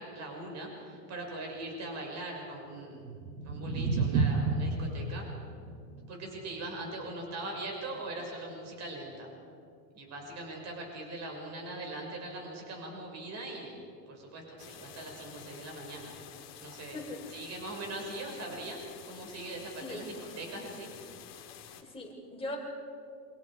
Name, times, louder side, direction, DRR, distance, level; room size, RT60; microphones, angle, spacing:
voice 1, 0.0-3.0 3.4-5.2 6.1-9.3 9.9-13.8 14.1-16.1 16.6-17.0 17.3-18.8 19.0-20.9, right 2 dB, 30° right, 1 dB, 6.4 m, -41 dB
sound 1, 2.9-9.1, right 4 dB, 65° right, 2.5 m, -33 dB
sound 2, 14.6-21.8, left 9 dB, 30° left, 2.4 m, -50 dB
voice 2, 21.8-22.6, left 2 dB, 10° left, -2 dB, 4.7 m, -40 dB
28.0 x 25.0 x 5.1 m, 2.5 s
supercardioid pair, 135°, 49 cm